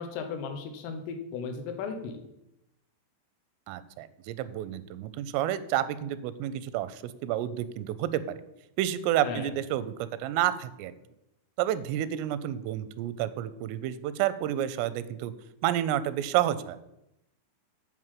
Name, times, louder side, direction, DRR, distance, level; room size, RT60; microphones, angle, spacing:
voice 1, 0.0-2.2 9.2-9.5, left 5 dB, 80° left, 5 dB, 3.7 m, -36 dB
voice 2, 3.7-8.4 8.8-10.9 11.6-15.3 15.6-16.8, right 12 dB, 85° right, 14 dB, 3.1 m, -30 dB
9.6 x 4.8 x 7.4 m, 0.86 s
omnidirectional pair, 5.7 m